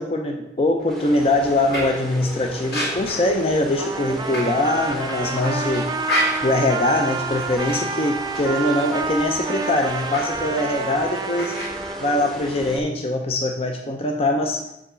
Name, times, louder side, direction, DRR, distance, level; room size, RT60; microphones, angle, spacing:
voice 1, 0.0-5.9 6.4-11.5 12.0-14.6, left 1 dB, 30° left, 2 dB, 0.6 m, -22 dB
sound 1, 0.8-12.8, right 1 dB, ahead, 0.8 m, -36 dB
sound 2, 0.9-11.7, equal, 60° left, 2.7 m, -33 dB
Trumpet, 3.8-12.2, right 4 dB, 20° right, 0.3 m, -29 dB
7.1 x 4.9 x 5.0 m, 0.87 s
head